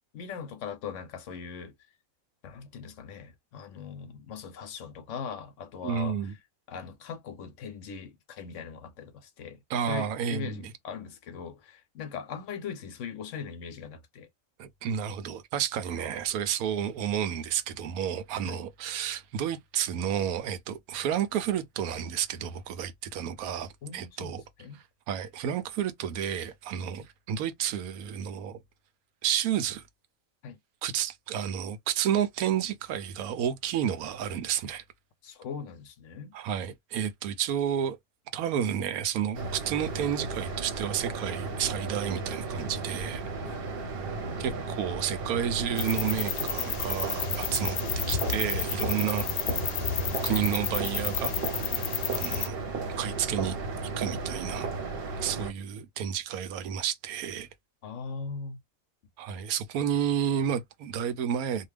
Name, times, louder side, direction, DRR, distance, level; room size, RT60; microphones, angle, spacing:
voice 1, 0.1-1.7 2.4-6.2 6.7-9.6 9.9-14.3 18.4-18.6 23.8-24.8 27.0-27.1 30.4-30.6 35.2-36.3 43.4-44.0 57.8-58.6, left 6 dB, 65° left, 0.9 m, -40 dB
voice 2, 5.8-6.3 9.7-10.7 14.6-24.4 25.1-28.6 29.2-29.8 30.8-34.8 36.3-38.0 38.3-43.2 44.4-47.8 48.1-49.3 50.2-51.3 52.1-52.6 53.0-53.6 54.0-54.7 55.2-57.5 59.2-61.7, right 9 dB, 85° right, 1.1 m, -31 dB
sound 1, 39.3-55.5, right 4 dB, 50° right, 0.8 m, -34 dB
sound 2, 45.8-52.5, left 9 dB, 90° left, 1.1 m, -31 dB
2.7 x 2.1 x 3.3 m
omnidirectional pair, 1.5 m